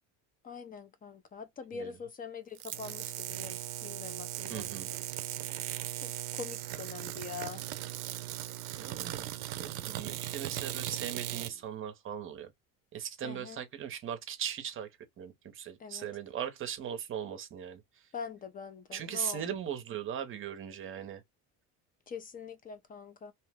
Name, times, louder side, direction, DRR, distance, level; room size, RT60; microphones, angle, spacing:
voice 1, 0.4-5.0 6.0-7.6 13.2-13.6 15.8-16.1 18.1-19.4 22.1-23.3, left 6 dB, 25° left, 0.4 m, -44 dB
sound 1, 2.6-11.5, right 14 dB, 85° right, 0.5 m, -38 dB
voice 2, 4.5-4.9 8.6-9.3 9.6-12.5 12.9-14.9 15.2-17.8 18.9-21.2, right 9 dB, 35° right, 0.6 m, -39 dB
2.8 x 2.0 x 3.3 m
cardioid pair, 145°, 37 cm